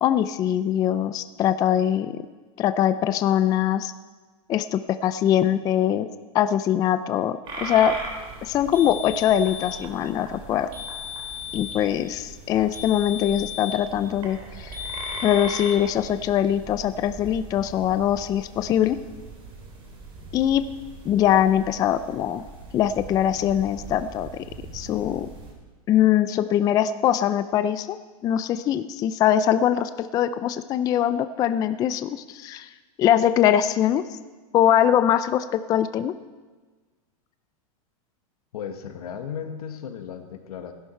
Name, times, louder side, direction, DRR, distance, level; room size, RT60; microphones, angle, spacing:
voice 1, 0.0-2.2 2.6-3.9 4.5-6.1 6.3-8.0 8.4-10.7 11.5-14.8 15.2-19.0 20.3-20.6 21.1-22.4 22.7-24.4 24.7-25.3 25.9-28.0 28.2-32.7 33.0-34.0 34.5-36.1, left 10 dB, 20° left, 12 dB, 0.4 m, -22 dB
sound 1, 7.4-25.5, right 3 dB, 25° right, 3.3 m, -40 dB
sound 2, 8.7-9.8 10.7-11.8 12.7-13.9 14.7-15.8, left 9 dB, 80° right, 3.4 m, -35 dB
voice 2, 38.5-40.7, left 8 dB, 90° left, 7 dB, 1.5 m, -35 dB
16.5 x 11.0 x 4.4 m, 1.3 s
supercardioid pair, 150°, 19 cm